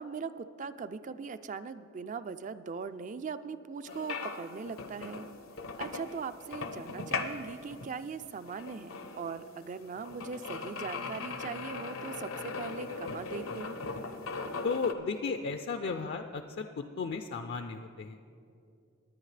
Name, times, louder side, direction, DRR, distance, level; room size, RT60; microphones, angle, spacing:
voice 1, 0.0-5.3 5.8-13.8, right 5 dB, 40° right, 13 dB, 0.4 m, -40 dB
sound 1, 3.9-14.9, left 4 dB, 85° left, 0.8 m, -39 dB
voice 2, 14.6-18.2, left 4 dB, 55° left, 7 dB, 0.4 m, -34 dB
19.0 x 10.0 x 3.3 m, 2.6 s
head